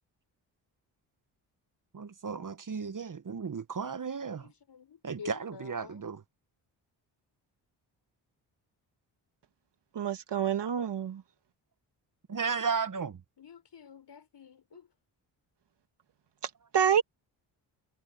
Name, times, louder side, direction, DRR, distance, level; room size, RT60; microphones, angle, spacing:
voice 1, 1.9-4.5 5.0-6.2 12.3-13.2, right 5 dB, 40° right, 1.5 m, -34 dB
voice 2, 4.0-6.1 13.4-14.9, left 7 dB, 55° left, 5.1 m, -50 dB
voice 3, 9.9-11.2 16.4-17.0, right 8 dB, 55° right, 1.9 m, -28 dB
supercardioid pair, 45°, 49 cm